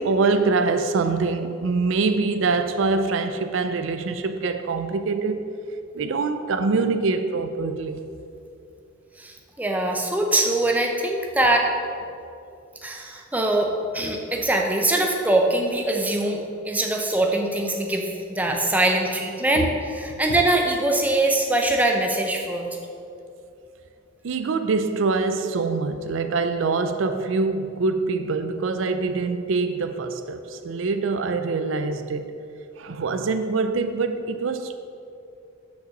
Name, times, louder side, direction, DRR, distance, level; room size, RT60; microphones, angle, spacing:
voice 1, 0.0-5.5 5.9-8.0 19.6-19.7 24.2-32.4 32.8-34.8, right 4 dB, 70° right, 0.4 m, -24 dB
voice 2, 9.2-11.7 12.8-22.7, right 1 dB, 10° right, 0.6 m, -23 dB
6.6 x 5.3 x 6.5 m
head